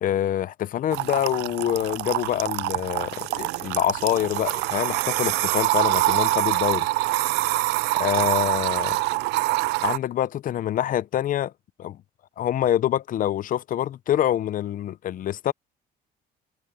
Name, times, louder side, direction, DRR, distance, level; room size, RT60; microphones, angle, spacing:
voice 1, 0.0-6.9 8.0-9.0 9.8-11.5 11.8-12.0 12.4-15.5, left 11 dB, 55° left, 0.7 m, -26 dB
sound 1, 0.9-10.0, right 19 dB, 90° right, 0.5 m, -25 dB
cardioid pair, 110°, 17 cm